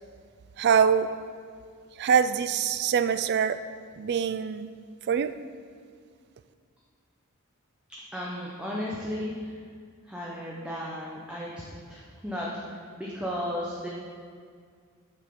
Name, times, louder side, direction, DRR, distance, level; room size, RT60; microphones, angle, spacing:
voice 1, 0.6-1.1 2.0-3.6 4.0-4.7 5.1-5.3, right 7 dB, 50° right, 12 dB, 0.3 m, -24 dB
voice 2, 8.1-9.3 10.1-11.6 11.9-12.5 13.0-13.9, equal, 5° right, -5 dB, 0.8 m, -34 dB
8.0 x 5.9 x 5.3 m, 2.1 s
head